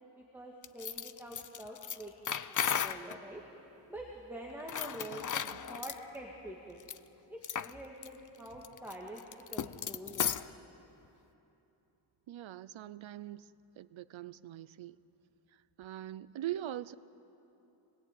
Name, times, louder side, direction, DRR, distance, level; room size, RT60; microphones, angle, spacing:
voice 1, 0.2-2.1 2.5-3.4 3.9-6.8 7.3-9.2 9.5-10.7, right 1 dB, 5° right, -1 dB, 2.0 m, -46 dB
sound 1, 0.6-3.2 4.6-6.0 6.8-7.0 7.4-7.7 8.0-8.1 8.5-10.5, left 8 dB, 45° left, 0.6 m, -35 dB
voice 2, 12.3-13.5 13.8-15.0 15.5-17.0, right 13 dB, 85° right, 16 dB, 0.7 m, -42 dB
26.0 x 20.0 x 9.2 m, 3.0 s
wide cardioid pair, 160°, 45 cm